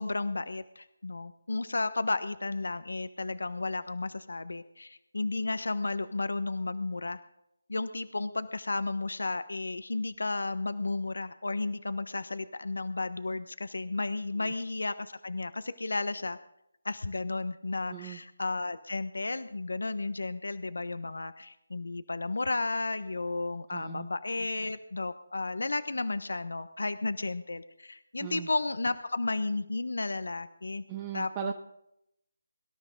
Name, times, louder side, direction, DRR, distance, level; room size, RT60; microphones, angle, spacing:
voice 1, 0.0-7.2 7.7-16.4 16.8-30.8 31.1-31.5, left 3 dB, 75° left, 12 dB, 1.1 m, -33 dB
voice 2, 23.7-24.1 28.2-28.5 30.9-31.5, right 11 dB, 25° right, 4 dB, 1.2 m, -38 dB
24.0 x 13.0 x 3.9 m, 0.77 s
figure-of-eight pair, 160°, 0 cm